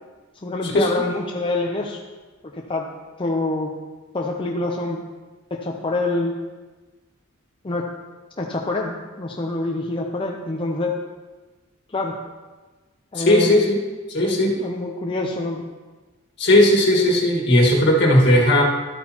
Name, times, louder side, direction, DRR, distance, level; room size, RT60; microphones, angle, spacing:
voice 1, 0.3-2.0 2.4-2.9 3.2-3.7 4.1-5.0 5.5-6.4 7.6-7.9 8.4-11.0 11.9-12.2 13.1-13.6 14.2-15.6, left 2 dB, 25° left, 0 dB, 0.6 m, -26 dB
voice 2, 13.2-13.8 14.1-14.5 16.4-18.6, left 1 dB, 60° left, -2 dB, 1.8 m, -16 dB
12.5 x 8.5 x 2.9 m, 1.3 s
head